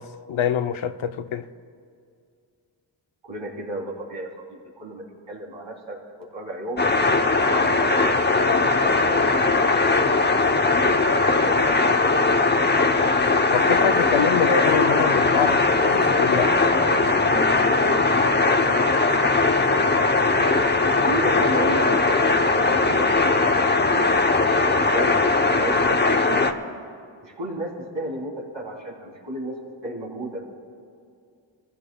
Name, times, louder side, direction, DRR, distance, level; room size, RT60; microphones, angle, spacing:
voice 1, 0.0-1.5 13.5-16.6, left 8 dB, 80° left, 0.7 m, -25 dB
voice 2, 3.2-6.9 7.2-7.8 8.1-9.3 9.7-10.0 10.8-11.1 11.3-11.8 12.2-12.5 21.0-22.3 22.5-23.4 23.9-24.1 24.6-26.5 27.2-29.6 29.8-30.5, right 1 dB, 65° right, 3.4 m, -33 dB
sound 1, 6.8-26.5, left 3 dB, 20° left, 0.8 m, -20 dB
28.0 x 15.5 x 2.3 m
cardioid pair, 70°, 47 cm